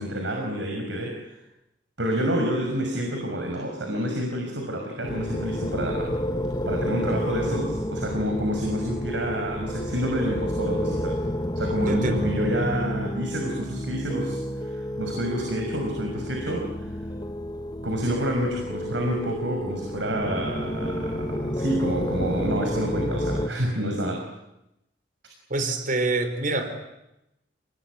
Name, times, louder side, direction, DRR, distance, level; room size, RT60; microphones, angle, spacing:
voice 1, 0.0-1.4 2.0-6.1 6.7-11.2 11.5-16.9 17.8-24.3, equal, 90° right, 2 dB, 6.0 m, -28 dB
sound 1, 5.0-23.5, equal, 25° left, 1.6 m, -30 dB
voice 2, 11.9-12.3 21.8-21.9 25.5-26.7, right 2 dB, 50° right, 8 dB, 4.5 m, -26 dB
29.0 x 21.0 x 9.7 m, 0.89 s
head